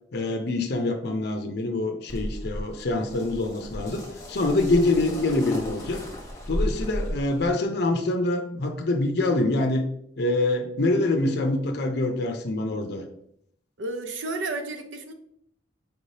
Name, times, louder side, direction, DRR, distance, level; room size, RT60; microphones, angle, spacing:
voice 1, 0.1-6.0 6.5-9.9 10.2-13.0, left 2 dB, 55° left, 4 dB, 0.5 m, -25 dB
sound 1, 2.1-7.5, equal, 15° left, 1.1 m, -34 dB
voice 2, 13.8-15.1, right 2 dB, 75° right, 7 dB, 0.5 m, -32 dB
4.5 x 2.7 x 3.2 m, 0.70 s
head